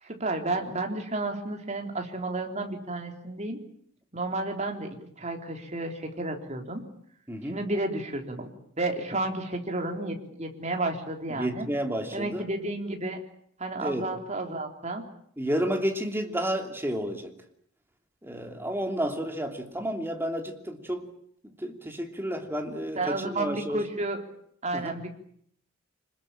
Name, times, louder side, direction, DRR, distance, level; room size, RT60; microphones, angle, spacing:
voice 1, 0.0-3.6 4.1-4.9 5.2-6.8 7.4-8.5 8.8-11.7 12.1-13.2 13.6-15.0 23.0-24.2 24.6-25.1, right 2 dB, 35° right, 3 dB, 3.7 m, -31 dB
voice 2, 7.3-7.6 11.3-12.4 13.8-14.0 15.4-17.3 18.2-21.1 21.6-23.8 24.7-25.1, equal, 10° right, 4 dB, 3.0 m, -31 dB
26.0 x 21.0 x 8.9 m, 0.67 s
head